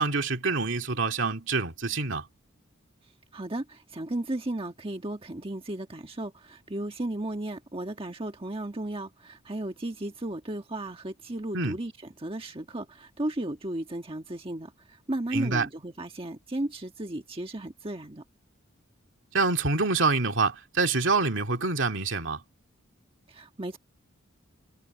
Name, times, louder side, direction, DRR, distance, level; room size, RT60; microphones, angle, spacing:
voice 1, 0.0-2.3 11.5-11.8 15.3-15.7 19.3-22.4, right 3 dB, 65° right, 2.7 m, -26 dB
voice 2, 3.3-11.9 12.2-18.2 23.3-23.8, right 1 dB, 25° right, 1.5 m, -34 dB
head